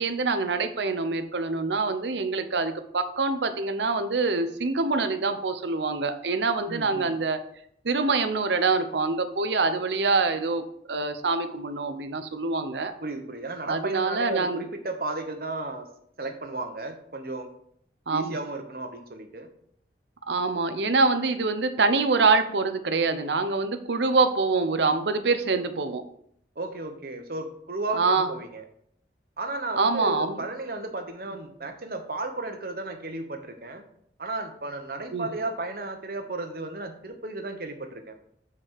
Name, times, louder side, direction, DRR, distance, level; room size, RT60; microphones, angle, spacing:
voice 1, 0.0-7.4 7.8-12.9 13.7-14.6 18.1-18.4 20.3-26.0 27.9-28.3 29.8-30.4 35.1-35.3, right 3 dB, 80° right, 8 dB, 0.8 m, -25 dB
voice 2, 6.7-7.2 13.0-15.9 16.2-17.5 18.1-19.5 26.6-28.6 29.4-33.8 34.2-38.1, right 2 dB, 55° right, 5 dB, 1.0 m, -34 dB
7.6 x 4.8 x 4.7 m, 0.68 s
head